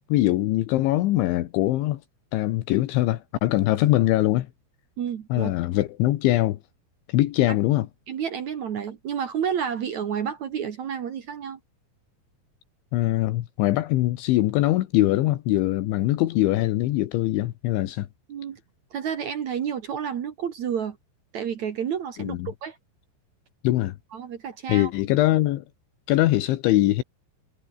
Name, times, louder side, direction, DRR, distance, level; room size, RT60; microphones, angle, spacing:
voice 1, 0.1-2.0 2.3-4.5 5.3-6.6 7.1-7.9 12.9-18.1 22.2-22.5 23.6-24.0 24.7-25.6 26.1-27.0, left 16 dB, 80° left, 3.5 m, -22 dB
voice 2, 5.0-5.5 8.1-11.6 18.3-18.6 18.9-21.0 21.3-22.8 24.1-24.9, right 8 dB, 60° right, 2.0 m, -30 dB
omnidirectional pair, 5.5 m